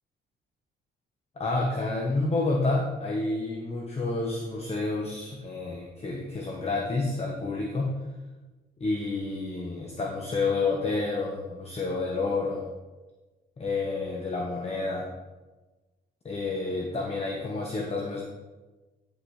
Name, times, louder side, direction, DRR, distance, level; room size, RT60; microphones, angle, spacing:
voice 1, 1.4-8.0 8.8-12.7 13.6-15.1 16.2-18.2, left 3 dB, 30° left, -1 dB, 1.2 m, -29 dB
10.0 x 6.4 x 3.3 m, 1.2 s
cardioid pair, 90°, 20 cm